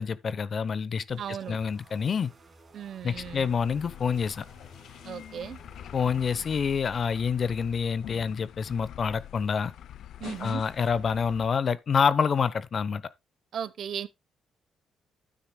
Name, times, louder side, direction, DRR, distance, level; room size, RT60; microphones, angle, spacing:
voice 1, 0.0-1.2 1.5-2.3 3.0-4.5 5.9-9.7 10.4-13.0, left 6 dB, 45° left, 0.8 m, -27 dB
sound 1, 1.1-6.6, right 2 dB, 30° right, 2.9 m, -55 dB
voice 2, 1.2-1.6 2.7-3.5 5.0-5.6 10.2-10.6 13.5-14.1, right 9 dB, 65° right, 0.8 m, -36 dB
sound 2, 3.1-11.5, left 11 dB, 75° left, 0.5 m, -45 dB
12.0 x 9.4 x 2.2 m
cardioid pair, 90°, 0 cm